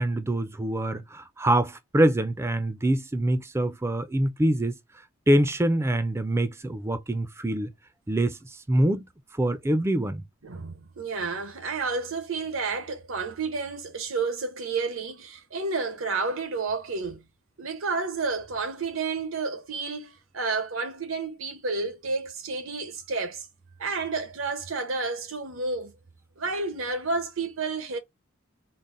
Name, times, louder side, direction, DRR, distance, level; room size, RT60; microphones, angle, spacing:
voice 1, 0.0-4.8 5.3-7.7 8.1-9.1 9.3-10.2, right 1 dB, 15° right, 0.4 m, -25 dB
voice 2, 10.4-17.3 17.6-23.5 23.8-25.9 26.4-28.0, right 4 dB, 85° right, 0.9 m, -30 dB
3.9 x 2.1 x 3.7 m
head